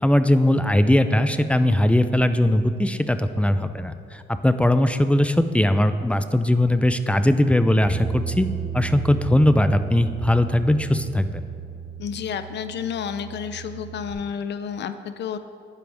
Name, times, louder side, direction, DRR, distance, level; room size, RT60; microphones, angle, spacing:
voice 1, 0.0-8.5 8.7-11.4, left 1 dB, 5° left, 10 dB, 0.4 m, -20 dB
Bass guitar, 7.9-14.1, right 7 dB, 40° left, 1.7 m, -34 dB
voice 2, 12.0-15.4, left 7 dB, 60° left, 11 dB, 0.5 m, -30 dB
12.0 x 9.3 x 3.5 m, 2.5 s
cardioid pair, 90°, 20 cm